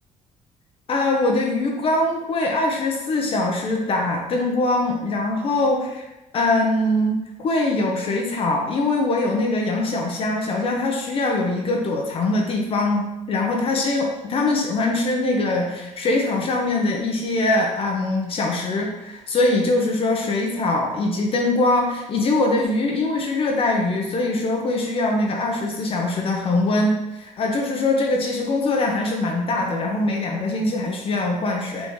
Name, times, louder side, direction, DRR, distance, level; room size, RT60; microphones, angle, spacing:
voice 1, 0.9-6.1 6.3-31.9, left 2 dB, 45° left, 0 dB, 0.7 m, -22 dB
4.0 x 3.1 x 3.5 m, 0.97 s
cardioid pair, 115°, 13 cm